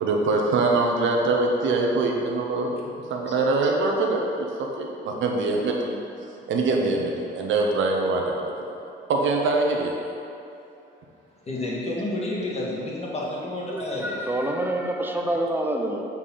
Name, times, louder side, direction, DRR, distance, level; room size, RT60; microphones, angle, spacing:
voice 1, 0.0-6.0 6.5-8.5 9.1-10.0, right 3 dB, 75° right, 1 dB, 1.1 m, -23 dB
voice 2, 11.5-14.2, left 1 dB, 35° left, -4 dB, 1.8 m, -30 dB
voice 3, 13.7-16.1, right 1 dB, 10° right, 2 dB, 0.9 m, -27 dB
7.0 x 4.6 x 5.8 m, 2.8 s
cardioid pair, 90°, 20 cm